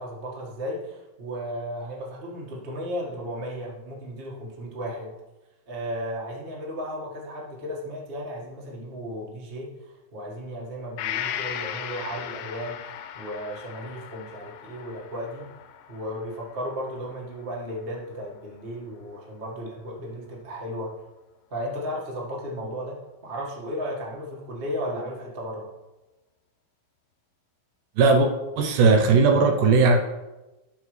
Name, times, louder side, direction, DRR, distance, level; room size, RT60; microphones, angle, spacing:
voice 1, 0.0-5.1 5.7-15.5 15.9-20.9 21.5-25.7, equal, 50° right, -4 dB, 0.6 m, -35 dB
Gong, 11.0-18.6 19.0-19.1, left 10 dB, 80° left, 2.1 m, -37 dB
voice 2, 28.0-28.3 28.6-30.0, right 4 dB, 75° right, 4 dB, 2.2 m, -18 dB
12.0 x 5.2 x 3.2 m, 1.1 s
omnidirectional pair, 4.1 m